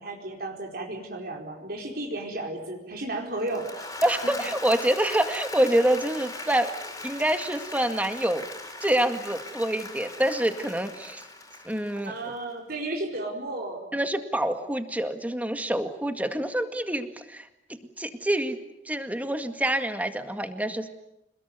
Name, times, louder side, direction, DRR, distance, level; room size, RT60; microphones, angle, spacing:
voice 1, 0.0-3.9 11.9-13.8, right 2 dB, 60° right, 1 dB, 4.6 m, -33 dB
Applause / Crowd, 3.3-12.4, left 2 dB, 20° left, 4.8 m, -40 dB
voice 2, 4.0-6.7 7.0-8.5 8.8-11.2 11.6-12.1 13.9-17.5 18.0-18.6 18.9-20.9, right 1 dB, 10° right, 7 dB, 2.0 m, -26 dB
27.5 x 21.0 x 9.5 m, 0.89 s
head